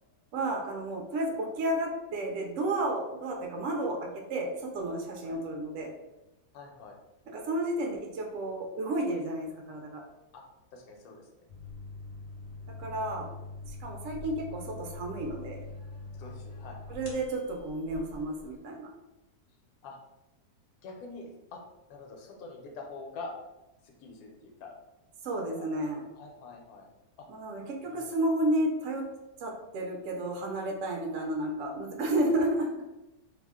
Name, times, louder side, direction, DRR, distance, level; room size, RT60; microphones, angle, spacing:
voice 1, 0.3-5.9 7.3-10.0 12.7-13.3 13.6-15.7 16.9-18.9 25.2-26.0 27.3-29.1 29.4-32.8, right 1 dB, 65° right, 1 dB, 0.8 m, -32 dB
voice 2, 6.5-7.0 10.3-10.4 10.7-11.5 16.1-17.0 19.8-20.0 20.8-21.6 21.9-23.3 23.8-24.7 25.5-25.8 26.1-26.9 27.2-27.3 27.9-28.3, left 3 dB, 75° left, 2 dB, 1.1 m, -46 dB
sound 1, 11.5-18.5, left 3 dB, 55° left, 0.8 m, -44 dB
2.7 x 2.1 x 3.5 m, 0.96 s
omnidirectional pair, 1.6 m